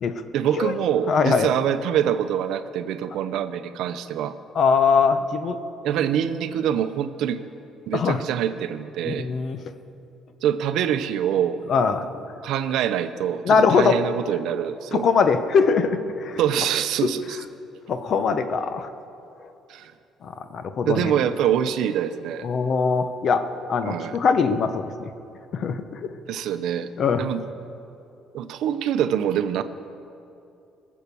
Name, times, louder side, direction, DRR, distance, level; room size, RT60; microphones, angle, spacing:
voice 1, 0.3-4.4 5.8-7.4 7.9-9.3 10.4-11.6 12.4-15.0 16.4-17.4 19.7-19.9 20.8-22.5 23.8-24.2 26.3-26.9 27.2-27.4 28.3-29.6, right 9 dB, 70° right, 11 dB, 0.7 m, -25 dB
voice 2, 1.1-1.5 4.5-5.6 7.9-8.2 9.0-9.6 11.7-12.1 13.4-14.0 14.9-16.4 17.9-18.9 20.2-21.1 22.4-23.4 23.7-25.1 25.5-26.1 27.0-27.3, left 5 dB, 45° left, 10 dB, 0.9 m, -22 dB
21.5 x 7.2 x 6.9 m, 2.7 s
cardioid pair, 130°, 0 cm